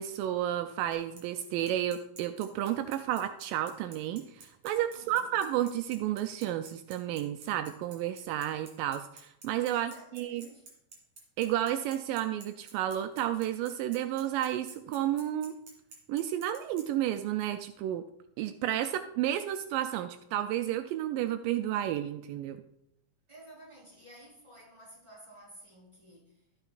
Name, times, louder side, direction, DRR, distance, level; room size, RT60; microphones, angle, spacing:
voice 1, 0.0-10.5 11.4-15.6 16.1-18.1 18.4-22.6, right 12 dB, 85° right, 9 dB, 2.2 m, -32 dB
Bicycle, 0.9-16.8, right 4 dB, 60° right, 3.6 m, -51 dB
voice 2, 4.9-5.5 9.7-10.7 23.3-26.4, right 1 dB, 10° right, -5 dB, 3.9 m, -53 dB
14.0 x 9.0 x 2.5 m, 0.79 s
omnidirectional pair, 3.9 m